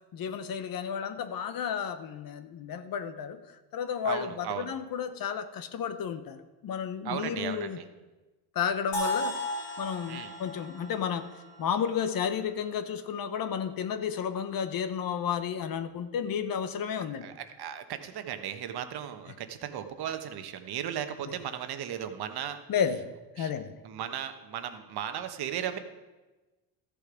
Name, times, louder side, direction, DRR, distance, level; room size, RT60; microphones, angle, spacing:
voice 1, 0.1-3.4 3.7-7.8 8.5-9.4 9.8-11.3 11.6-17.3 21.2-21.3 22.7-23.1 23.4-23.7, left 7 dB, 50° left, 10 dB, 0.9 m, -32 dB
voice 2, 4.0-4.7 7.0-7.8 10.1-10.3 17.2-22.6 23.4-23.5 23.8-25.8, right 9 dB, 60° right, 8 dB, 1.1 m, -36 dB
sound 1, 8.9-12.8, left 1 dB, 70° left, 3.0 m, -36 dB
13.5 x 6.9 x 5.0 m, 1.2 s
supercardioid pair, 90°, 44 cm